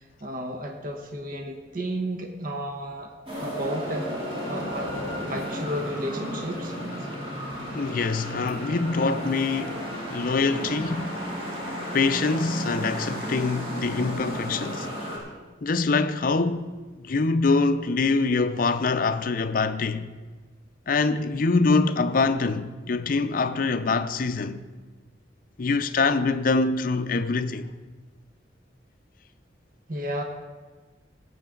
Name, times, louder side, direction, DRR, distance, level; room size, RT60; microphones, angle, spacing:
voice 1, 0.0-3.1 3.4-4.1 4.5-4.9 5.3-6.7 29.9-30.2, right 1 dB, 50° right, 1.0 m, -32 dB
sound 1, 3.3-15.2, equal, 30° right, 2.6 m, -33 dB
voice 2, 7.7-11.2 11.9-14.9 15.6-16.7 17.0-20.1 20.9-24.6 25.6-27.7, left 3 dB, 50° left, 0.5 m, -24 dB
17.0 x 7.7 x 3.8 m
head